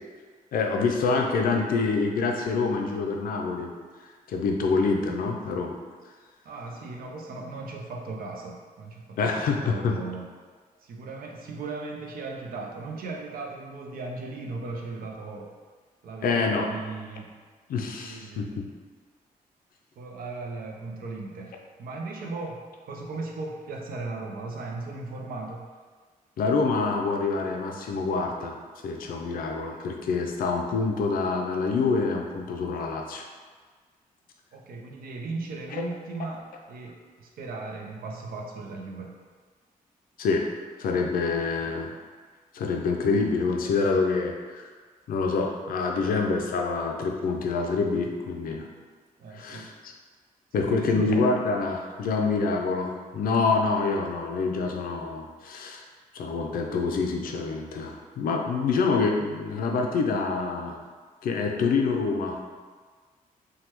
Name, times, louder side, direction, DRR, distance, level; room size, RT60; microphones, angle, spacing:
voice 1, 0.5-3.7 4.3-5.8 9.2-9.9 16.2-16.7 17.7-18.7 26.4-28.6 28.8-33.2 40.2-40.5 40.8-41.9 42.5-44.7 45.1-48.7 49.3-49.9 50.5-55.8 56.1-60.8 61.2-62.4, left 4 dB, 70° left, 2 dB, 0.4 m, -26 dB
voice 2, 6.4-10.2 10.8-15.5 16.0-17.4 17.9-18.6 20.0-25.7 29.7-29.8 34.5-39.1 49.2-49.7 50.6-51.3, right 3 dB, 70° right, 0 dB, 0.5 m, -37 dB
3.3 x 2.2 x 2.9 m, 1.5 s
cardioid pair, 105°, 15 cm